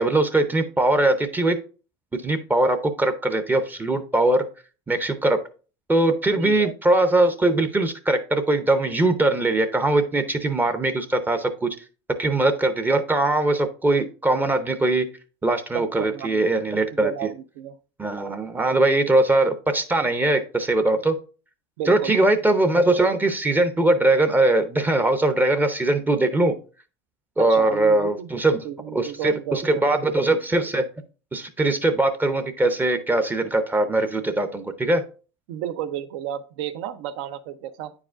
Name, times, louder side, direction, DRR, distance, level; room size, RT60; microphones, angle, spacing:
voice 1, 0.0-1.6 2.1-4.4 4.9-5.4 5.9-11.8 12.2-15.1 15.4-17.1 18.0-21.2 21.9-26.6 27.4-28.6 28.9-30.8 31.3-35.0, right 2 dB, 10° right, 0.6 m, -21 dB
voice 2, 6.3-6.7 15.7-16.4 16.9-17.8 21.8-22.2 27.4-28.3 28.6-29.8 35.5-37.9, right 10 dB, 70° right, 0.6 m, -32 dB
8.8 x 4.8 x 2.4 m
supercardioid pair, 115°, 15 cm